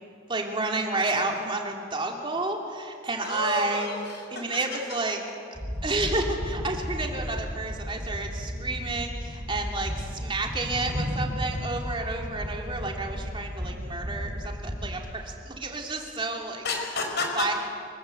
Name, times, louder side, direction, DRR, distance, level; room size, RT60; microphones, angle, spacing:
voice 1, 0.3-3.9 4.3-5.2 5.8-16.6 17.4-17.5, right 2 dB, 25° right, 1 dB, 2.9 m, -30 dB
voice 2, 3.2-4.4 16.6-17.4, left 3 dB, 55° left, 2 dB, 5.0 m, -31 dB
sound 1, 5.5-15.0, equal, 5° right, 4.5 m, -34 dB
25.5 x 21.0 x 8.0 m, 2.4 s
head